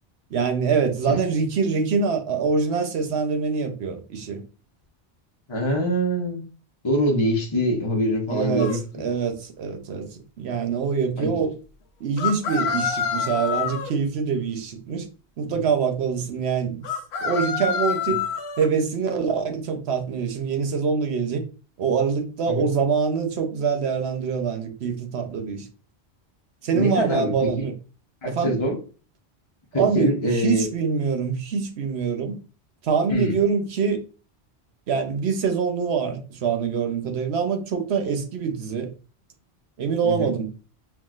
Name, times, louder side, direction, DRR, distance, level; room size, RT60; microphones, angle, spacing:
voice 1, 0.3-4.4 8.3-8.7 9.0-11.5 12.0-15.1 15.4-16.8 17.2-18.2 18.6-21.4 21.8-25.7 26.6-27.7 28.2-28.6 29.7-32.4 32.8-34.0 34.9-38.9 39.8-40.5, right 5 dB, 75° right, 1.0 m, -24 dB
voice 2, 5.5-6.4 6.8-9.0 11.2-11.4 18.1-18.2 22.5-22.7 26.7-27.7 28.2-28.8 29.7-30.7 33.1-33.4 40.0-40.3, equal, 30° left, 0.8 m, -24 dB
sound 1, 8.6-8.8 12.2-13.9 16.8-18.7, left 7 dB, 80° left, 0.9 m, -27 dB
5.8 x 2.4 x 2.4 m
omnidirectional pair, 1.1 m